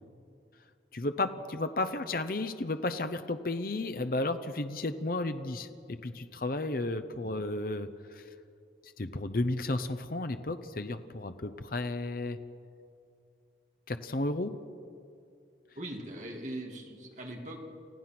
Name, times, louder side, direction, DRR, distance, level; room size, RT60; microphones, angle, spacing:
voice 1, 0.9-8.2 9.0-12.4 13.9-14.5, left 2 dB, 50° left, 9 dB, 0.8 m, -33 dB
voice 2, 15.8-17.6, right 1 dB, 40° right, 1 dB, 2.4 m, -40 dB
29.0 x 15.5 x 6.0 m, 2.4 s
head